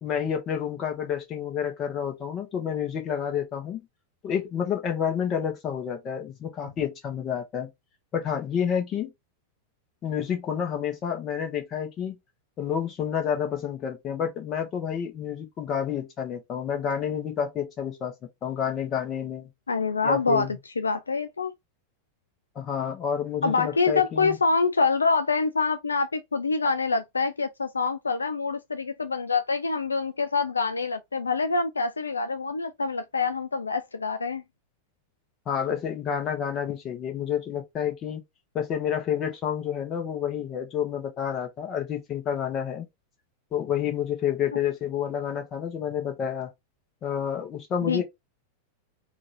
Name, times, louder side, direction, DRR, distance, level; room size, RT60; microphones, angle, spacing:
voice 1, 0.0-3.8 4.2-7.7 8.1-9.1 10.0-12.2 12.6-18.1 18.4-19.5 20.0-20.5 22.5-24.4 35.5-38.2 38.5-42.9 43.5-46.5 47.0-48.0, left 8 dB, 30° left, 1.3 m, -29 dB
voice 2, 19.7-20.5 20.8-21.5 23.4-34.4 47.8-48.0, left 4 dB, 75° left, 0.4 m, -26 dB
4.4 x 2.7 x 2.6 m
figure-of-eight pair, 90°, 0 cm